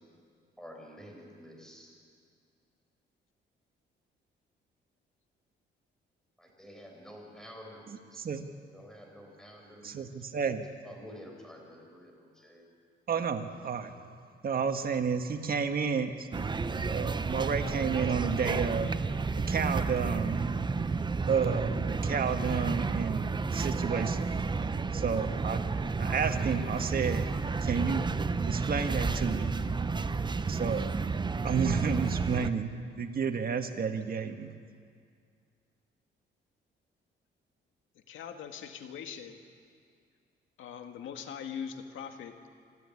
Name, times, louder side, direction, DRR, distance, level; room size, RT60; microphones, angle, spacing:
voice 1, 0.6-1.9 6.4-8.2 8.7-10.1 10.8-12.7, equal, 5° left, 0 dB, 6.7 m, -49 dB
voice 2, 7.9-8.5 9.8-10.7 13.1-14.0 14.4-16.5 16.9-18.9 19.4-20.4 21.3-24.4 24.9-25.7 26.0-27.3 27.6-28.1 28.5-29.5 30.5-30.9 31.4-32.7 33.0-34.5, right 6 dB, 50° right, 6 dB, 1.7 m, -31 dB
sound 1, 16.3-32.5, right 4 dB, 20° right, 0.8 m, -31 dB
voice 3, 38.1-39.4 40.6-42.4, left 7 dB, 80° left, 6 dB, 2.1 m, -41 dB
27.0 x 13.0 x 9.8 m, 2.2 s
cardioid pair, 90°, 20 cm